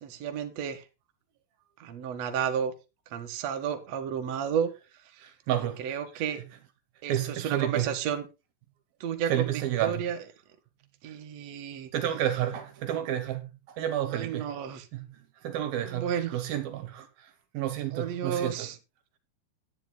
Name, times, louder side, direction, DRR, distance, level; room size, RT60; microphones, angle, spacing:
voice 1, 0.0-0.8 1.8-2.7 3.1-4.7 5.8-6.4 7.0-8.3 9.0-9.5 9.8-10.2 11.0-11.9 14.1-14.9 15.8-16.4 17.9-18.8, right 8 dB, 55° right, 2.3 m, -32 dB
voice 2, 5.2-6.2 7.1-7.9 9.3-10.1 11.9-14.5 14.9-18.7, right 11 dB, 70° right, 2.9 m, -31 dB
11.0 x 10.0 x 4.0 m
omnidirectional pair, 4.5 m